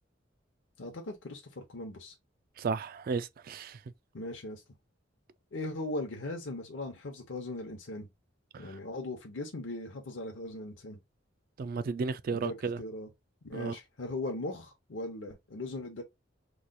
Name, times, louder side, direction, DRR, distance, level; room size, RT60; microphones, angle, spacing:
voice 1, 0.8-2.1 4.1-4.6 5.5-8.1 8.6-11.0 12.3-13.1 13.4-16.0, left 2 dB, 80° left, 0.8 m, -39 dB
voice 2, 2.6-3.8 11.6-12.8 13.5-13.8, right 5 dB, 50° right, 0.3 m, -33 dB
3.1 x 2.3 x 3.8 m
head